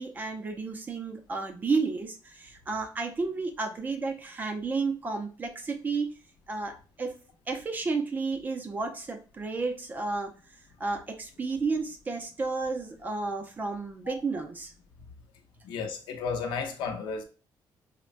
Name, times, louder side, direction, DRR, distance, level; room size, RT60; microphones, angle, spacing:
voice 1, 0.0-6.1 6.5-7.1 7.5-10.3 10.8-14.7, right 4 dB, 20° right, 0.4 m, -32 dB
voice 2, 15.6-17.2, left 5 dB, 70° left, 0.7 m, -33 dB
4.3 x 2.1 x 2.4 m
cardioid pair, 175°, 8 cm